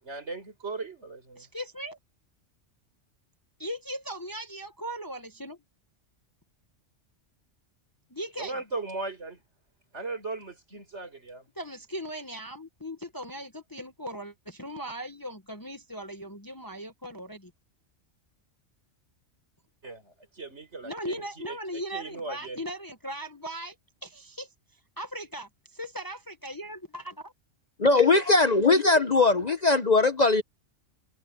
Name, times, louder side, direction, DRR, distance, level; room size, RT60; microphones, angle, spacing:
voice 1, 0.0-1.5 8.4-9.4 9.9-11.5 19.8-22.6, right 3 dB, 65° right, 5.3 m, -38 dB
voice 2, 1.4-2.0 3.6-5.6 8.1-8.6 11.5-17.5 20.8-23.7 24.0-24.5 25.0-27.3, equal, 20° left, 1.1 m, -38 dB
voice 3, 27.8-30.4, left 3 dB, 40° left, 0.9 m, -20 dB
omnidirectional pair, 1.3 m